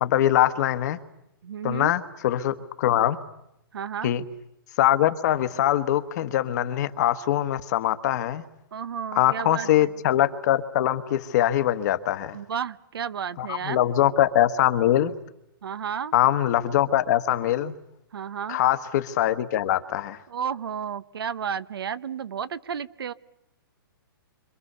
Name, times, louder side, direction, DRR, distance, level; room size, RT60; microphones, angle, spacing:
voice 1, 0.0-1.0 1.6-3.2 4.0-4.2 4.8-8.4 9.1-12.4 13.4-15.1 16.1-17.7 18.5-20.2, left 12 dB, 45° left, 10 dB, 1.5 m, -23 dB
voice 2, 1.4-1.9 3.7-4.1 8.7-9.9 12.3-13.9 15.6-16.1 18.1-18.6 20.3-23.1, right 7 dB, 80° right, 16 dB, 1.0 m, -32 dB
29.0 x 26.0 x 6.9 m, 0.82 s
hypercardioid pair, 150°, 12 cm